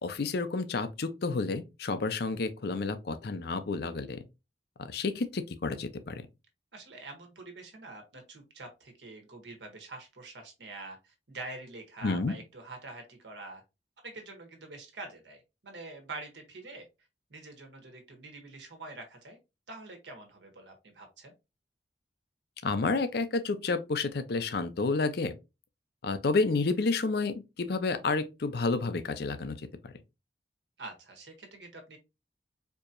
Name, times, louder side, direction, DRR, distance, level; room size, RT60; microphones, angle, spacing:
voice 1, 0.0-4.2 4.8-6.2 12.0-12.3 22.6-25.3 26.0-29.9, left 3 dB, 60° left, 0.5 m, -30 dB
voice 2, 6.7-13.6 14.0-16.9 17.3-19.4 19.7-21.3 30.8-32.0, right 2 dB, 75° right, 1.4 m, -45 dB
4.5 x 2.9 x 2.5 m
head